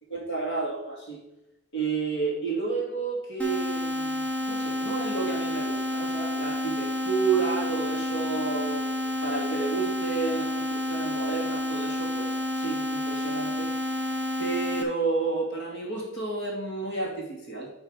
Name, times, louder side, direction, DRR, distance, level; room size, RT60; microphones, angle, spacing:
voice 1, 0.1-1.2 1.7-8.9 9.2-13.7 14.4-17.7, right 4 dB, 60° left, -1 dB, 2.5 m, -31 dB
sound 1, 3.4-14.8, left 1 dB, 5° left, 0.9 m, -30 dB
11.0 x 3.9 x 4.9 m, 0.87 s
head